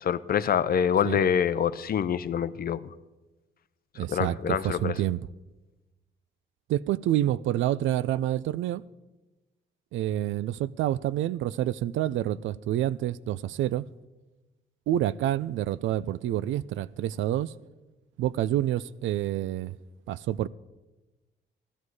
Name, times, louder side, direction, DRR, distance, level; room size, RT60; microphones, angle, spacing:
voice 1, 0.0-2.8 4.1-4.9, left 8 dB, 50° left, 0.6 m, -25 dB
voice 2, 4.0-5.2 6.7-8.8 9.9-13.9 14.9-17.5 18.2-19.8 20.1-20.5, right 13 dB, 75° right, 0.4 m, -28 dB
13.5 x 12.5 x 4.8 m
cardioid pair, 90°, 20 cm